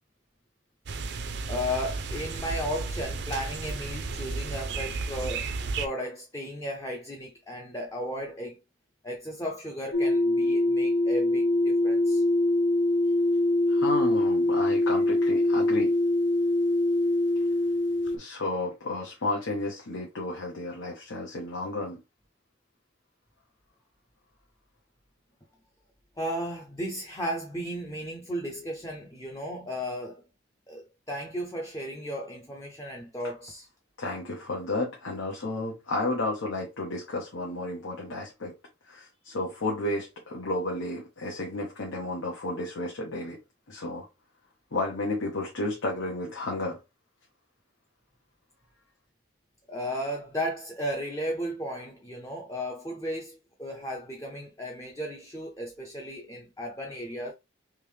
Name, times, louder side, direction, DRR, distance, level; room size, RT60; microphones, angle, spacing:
sound 1, 0.9-5.9, right 4 dB, 55° right, 0.5 m, -33 dB
voice 1, 1.5-5.5 5.8-8.6 9.0-12.2 26.2-30.2 30.7-33.7 49.7-57.3, equal, 15° left, 0.6 m, -35 dB
sound 2, 9.9-18.2, left 1 dB, 65° left, 0.7 m, -24 dB
voice 2, 13.7-15.9 18.1-22.0 34.0-38.5 38.9-43.4 43.7-44.1 44.7-46.8, left 2 dB, 80° left, 1.0 m, -32 dB
3.6 x 2.9 x 3.3 m
head